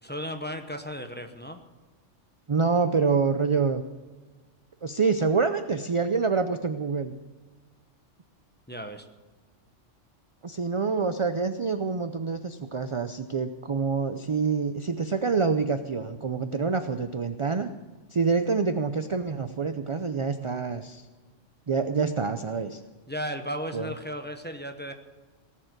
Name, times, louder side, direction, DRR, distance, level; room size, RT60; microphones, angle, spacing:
voice 1, 0.0-1.6 8.7-9.1 23.1-24.9, equal, 10° left, 6 dB, 0.8 m, -35 dB
voice 2, 2.5-3.8 4.8-7.1 10.4-17.7 18.1-21.1 21.7-22.8 23.7-23.9, right 5 dB, 45° right, 9 dB, 0.4 m, -26 dB
17.5 x 7.4 x 7.9 m, 1.3 s
omnidirectional pair, 1.3 m